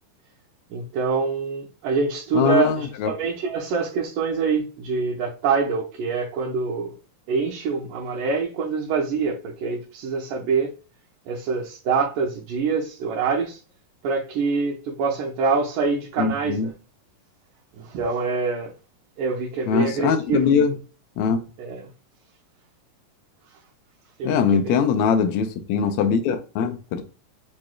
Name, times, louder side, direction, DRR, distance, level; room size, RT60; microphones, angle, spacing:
voice 1, 0.7-7.0 7.3-10.8 11.3-13.6 14.0-16.7 17.8-18.7 19.2-20.5 21.6-21.9 24.2-24.8, right 5 dB, 80° right, 2.3 m, -25 dB
voice 2, 2.3-3.1 16.2-16.7 19.7-20.7 21.2-21.4 24.2-27.0, left 6 dB, 80° left, 1.6 m, -21 dB
6.8 x 3.1 x 2.3 m
omnidirectional pair, 3.9 m